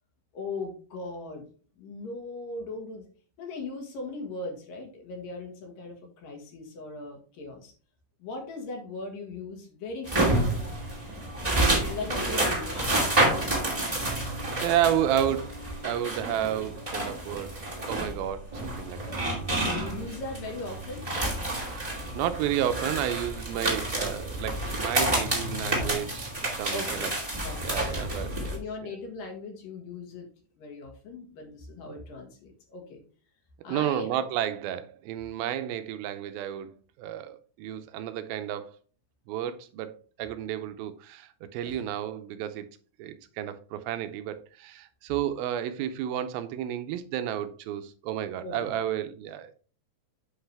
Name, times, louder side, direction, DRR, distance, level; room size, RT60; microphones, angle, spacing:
voice 1, 0.3-1.5 1.8-3.1 3.4-7.7 8.2-10.7 11.9-13.0 14.2-14.3 19.5-21.1 26.7-27.1 27.4-28.1 28.5-30.3 30.6-33.0 33.6-34.2 41.6-41.8 48.4-48.8, left 3 dB, 65° left, 2.9 m, -39 dB
sound 1, 10.0-28.6, right 1 dB, 15° right, 1.6 m, -29 dB
voice 2, 14.6-15.6 15.8-19.0 21.8-27.1 27.6-28.6 33.7-38.7 39.3-39.9 40.2-42.7 43.0-49.5, right 11 dB, 80° right, 2.4 m, -31 dB
8.0 x 5.7 x 3.3 m
omnidirectional pair, 4.4 m